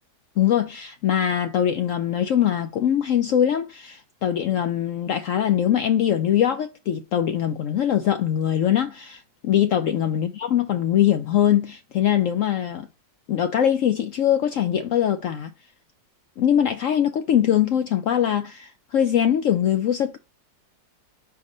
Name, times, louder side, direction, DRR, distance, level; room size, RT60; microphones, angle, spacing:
voice 1, 0.4-12.9 13.3-15.5 16.4-20.2, left 10 dB, 90° left, 0.7 m, -22 dB
4.7 x 4.6 x 5.2 m
omnidirectional pair, 2.0 m